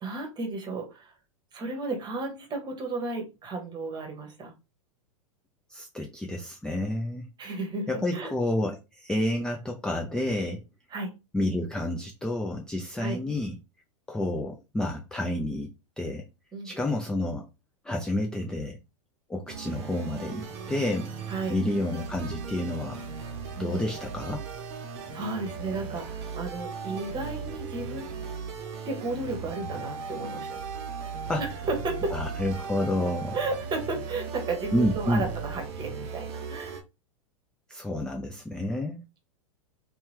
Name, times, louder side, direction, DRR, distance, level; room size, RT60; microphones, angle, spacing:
voice 1, 0.0-1.1 1.5-4.5 7.4-8.3 10.9-11.1 13.0-13.2 16.5-16.7 21.3-21.6 23.5-23.8 25.1-28.1 28.8-30.6 31.4-32.1 33.3-36.8, right 3 dB, 25° right, 1.1 m, -33 dB
voice 2, 5.7-7.3 7.9-10.6 11.3-13.5 14.1-15.7 16.0-16.3 16.6-17.5 17.8-18.8 19.3-23.0 23.6-24.4 31.3-31.4 32.1-33.4 34.7-35.3 37.7-39.0, left 1 dB, 5° left, 0.3 m, -29 dB
sound 1, 19.5-36.8, right 5 dB, 50° right, 0.7 m, -37 dB
2.8 x 2.3 x 3.1 m
hypercardioid pair, 100°, 17 cm